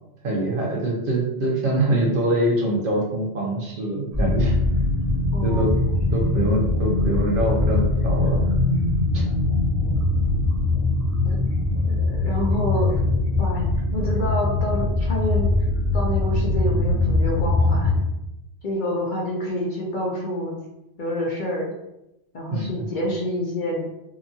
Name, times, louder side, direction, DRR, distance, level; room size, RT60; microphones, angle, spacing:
voice 1, 0.2-4.6 5.4-5.8 6.1-8.4 9.1-9.2 22.5-22.9, right 1 dB, 60° right, -2 dB, 0.7 m, -24 dB
sound 1, 4.1-18.0, left 2 dB, 25° right, 0.3 m, -22 dB
voice 2, 5.3-5.7 9.8-10.1 11.2-11.4 11.9-13.0 13.4-15.5 15.9-18.0 18.6-20.6 21.0-21.7 22.3-23.9, left 1 dB, 55° left, -3 dB, 0.6 m, -28 dB
2.8 x 2.3 x 2.6 m, 0.89 s
omnidirectional pair, 1.2 m